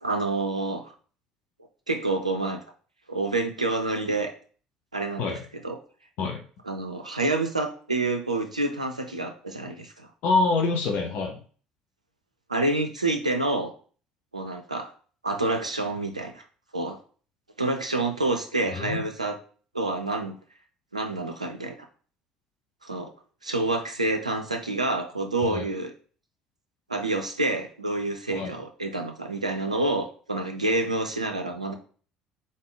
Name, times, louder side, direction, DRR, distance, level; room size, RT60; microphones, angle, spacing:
voice 1, 0.0-0.8 1.9-2.6 3.1-4.3 4.9-5.4 5.6-5.8 6.6-10.1 12.5-13.7 14.3-14.9 15.2-16.4 16.7-17.0 17.6-19.4 19.7-20.4 20.9-21.8 22.8-23.1 23.4-25.9 26.9-31.7, right 2 dB, 90° right, 4 dB, 0.4 m, -28 dB
voice 2, 10.2-11.4 18.7-19.0 25.4-25.7 28.3-28.6, left 3 dB, 55° left, 2 dB, 0.7 m, -26 dB
3.8 x 3.7 x 3.8 m, 0.42 s
figure-of-eight pair, 55°, 4 cm